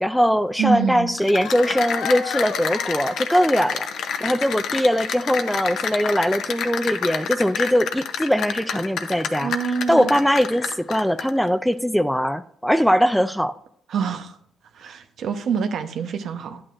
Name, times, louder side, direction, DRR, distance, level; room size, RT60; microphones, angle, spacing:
voice 1, 0.0-9.5 9.9-13.5, equal, ahead, 0.4 m, -21 dB
voice 2, 0.6-1.1 9.4-10.1 13.9-14.4 14.7-16.6, right 6 dB, 65° right, 0.8 m, -26 dB
Cheering / Applause, 1.1-11.4, left 7 dB, 75° left, 0.8 m, -28 dB
10.5 x 8.7 x 2.5 m
cardioid pair, 90°, 0 cm